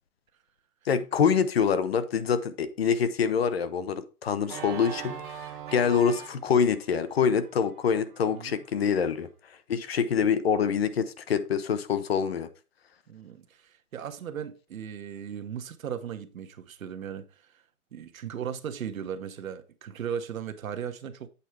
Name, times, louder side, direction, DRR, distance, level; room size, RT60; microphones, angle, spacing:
voice 1, 0.9-5.2 5.7-9.3 9.7-12.5, left 7 dB, 40° left, 0.8 m, -25 dB
Organ, 4.4-9.3, right 8 dB, 35° right, 1.2 m, -42 dB
voice 2, 8.3-8.6 13.1-17.6 17.9-21.3, right 8 dB, 60° right, 1.2 m, -37 dB
8.4 x 4.6 x 4.8 m
hypercardioid pair, 165°, 45 cm